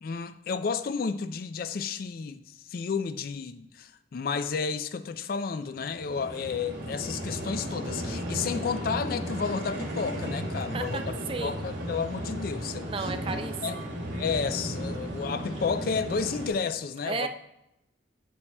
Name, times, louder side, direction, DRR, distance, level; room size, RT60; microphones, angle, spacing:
voice 1, 0.0-2.4 2.7-11.0 11.4-13.1 13.6-13.8 14.1-17.3, left 5 dB, 50° left, 0.3 m, -31 dB
sound 1, 5.7-16.5, equal, 75° right, 2.2 m, -35 dB
voice 2, 10.7-11.6 12.9-13.9 17.0-17.3, right 4 dB, 30° right, 0.3 m, -34 dB
8.4 x 7.2 x 2.2 m
head